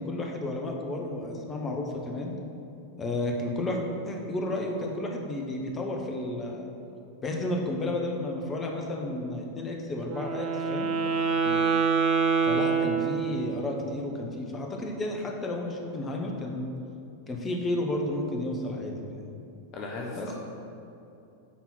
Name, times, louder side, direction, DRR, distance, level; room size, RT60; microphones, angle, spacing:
voice 1, 0.0-2.3 3.0-3.8 4.0-6.7 7.2-10.9 12.4-16.7 17.3-19.3 20.1-20.3, left 1 dB, 20° left, 1 dB, 1.0 m, -32 dB
Wind instrument woodwind instrument, 10.0-13.7, right 5 dB, 35° right, 0.8 m, -26 dB
voice 2, 19.7-20.3, left 3 dB, 35° left, -1 dB, 0.8 m, -37 dB
8.4 x 4.0 x 5.8 m, 2.7 s
figure-of-eight pair, 90°, 0 cm